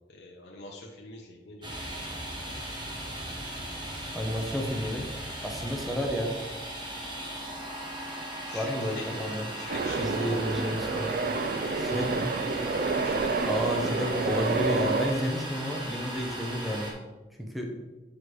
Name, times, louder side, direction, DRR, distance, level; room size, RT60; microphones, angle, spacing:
voice 1, 0.1-1.7 8.5-9.2 9.5-10.1 13.0-13.5, left 2 dB, 60° left, -1 dB, 0.7 m, -44 dB
Domestic sounds home sounds, 1.6-16.9, right 1 dB, 25° right, 1.2 m, -38 dB
voice 2, 4.1-5.1 5.4-6.3 8.5-9.4 9.9-11.1 11.7-12.3 13.5-16.9 17.5-17.7, equal, ahead, 1 dB, 0.7 m, -31 dB
sound 1, 9.7-15.1, right 4 dB, 45° right, 0.3 m, -29 dB
8.4 x 3.2 x 4.6 m, 1.2 s
head